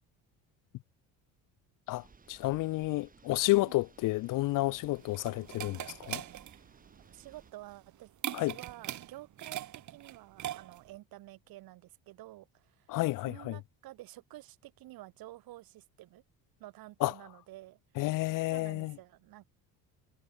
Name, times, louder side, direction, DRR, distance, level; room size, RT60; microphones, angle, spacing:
voice 1, 1.9-6.2 8.3-8.6 12.9-13.6 17.0-17.1 18.0-19.0, left 19 dB, 55° left, 0.6 m, -31 dB
sound 1, 1.9-7.5, right 5 dB, 20° right, 7.4 m, -60 dB
sound 2, 4.5-11.0, right 12 dB, 50° right, 2.7 m, -42 dB
voice 2, 7.1-8.1 8.4-12.9 13.2-16.2 16.6-17.8 18.5-19.5, right 16 dB, 65° right, 6.4 m, -50 dB
cardioid pair, 135°, 37 cm